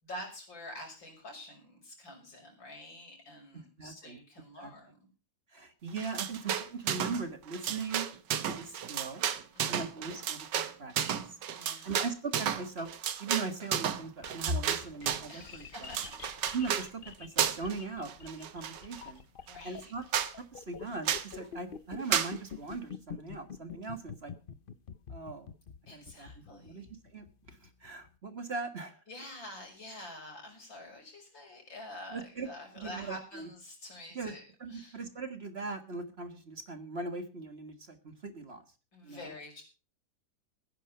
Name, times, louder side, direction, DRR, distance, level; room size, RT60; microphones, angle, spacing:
voice 1, 0.0-5.1 9.5-9.8 11.5-11.9 15.3-16.2 19.5-19.9 25.9-26.9 29.1-34.4 34.7-35.0 38.9-39.6, left 1 dB, 90° left, 1 dB, 6.7 m, -47 dB
voice 2, 3.8-4.2 4.6-4.7 5.5-8.1 8.4-9.3 9.7-11.4 11.8-12.9 13.2-15.9 16.5-19.2 19.6-20.0 20.5-24.3 25.1-25.5 25.9-29.0 32.1-32.5 32.7-33.5 34.1-34.3 34.6-38.6 39.0-39.3, right 4 dB, 35° right, 8 dB, 1.7 m, -39 dB
sound 1, 6.0-7.2 7.5-15.3 15.7-16.9 17.4-17.8 18.1-19.0 19.5-19.6 19.8-19.9 20.1-20.3 21.1-21.3 22.1-22.3, right 9 dB, 70° right, 1.7 m, -32 dB
sound 2, 14.0-28.1, left 7 dB, 60° left, 0.5 m, -47 dB
16.5 x 10.0 x 5.7 m, 0.35 s
omnidirectional pair, 2.0 m